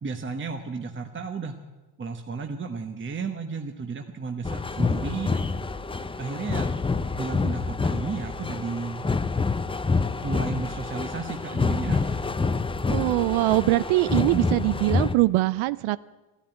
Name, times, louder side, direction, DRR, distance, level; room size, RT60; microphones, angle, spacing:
voice 1, 0.0-1.6 2.0-5.6 6.2-6.7 7.2-9.0 10.2-12.2 14.3-14.5, right 4 dB, 25° right, 5 dB, 1.0 m, -33 dB
sound 1, 4.4-15.2, left 4 dB, 10° left, 0.5 m, -27 dB
voice 2, 12.9-16.0, right 18 dB, 90° right, 17 dB, 0.5 m, -22 dB
13.5 x 11.5 x 8.8 m, 1.1 s
cardioid pair, 95°, 46 cm